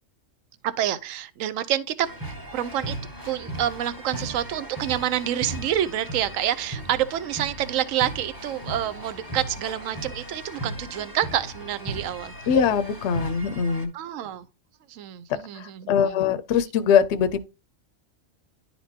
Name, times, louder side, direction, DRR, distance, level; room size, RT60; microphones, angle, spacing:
voice 1, 0.8-2.1 2.5-2.9 3.2-12.3 13.9-14.4 14.9-16.3, right 11 dB, 75° right, 1.0 m, -28 dB
sound 1, 2.0-13.9, right 1 dB, 15° right, 1.0 m, -37 dB
voice 2, 12.5-13.9 15.9-17.4, left 7 dB, 65° left, 0.8 m, -21 dB
11.0 x 4.3 x 2.7 m
omnidirectional pair, 1.4 m